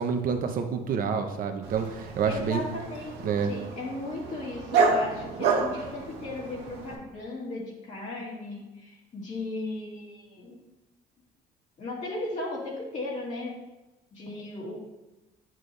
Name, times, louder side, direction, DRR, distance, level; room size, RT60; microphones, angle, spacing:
voice 1, 0.0-2.6 3.2-3.5, right 6 dB, 55° right, 6 dB, 1.0 m, -28 dB
Dog, 1.6-7.0, right 4 dB, 85° right, 1.4 m, -29 dB
voice 2, 2.2-10.6 11.8-13.5 14.1-14.8, left 2 dB, 45° left, -5 dB, 2.3 m, -36 dB
9.2 x 6.1 x 3.3 m, 1.0 s
cardioid pair, 110°, 17 cm